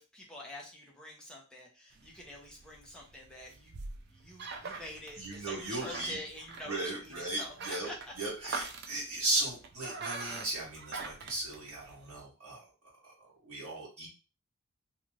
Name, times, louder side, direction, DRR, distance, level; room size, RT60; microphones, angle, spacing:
voice 1, 0.0-3.7 4.1-8.1, left 1 dB, 5° left, -2 dB, 0.6 m, -47 dB
sound 1, 1.9-12.2, right 4 dB, 50° right, 0.4 m, -44 dB
voice 2, 5.2-6.2 6.6-7.9 8.2-12.9 13.4-14.1, right 2 dB, 80° right, -6 dB, 1.0 m, -36 dB
2.6 x 2.4 x 3.1 m, 0.34 s
head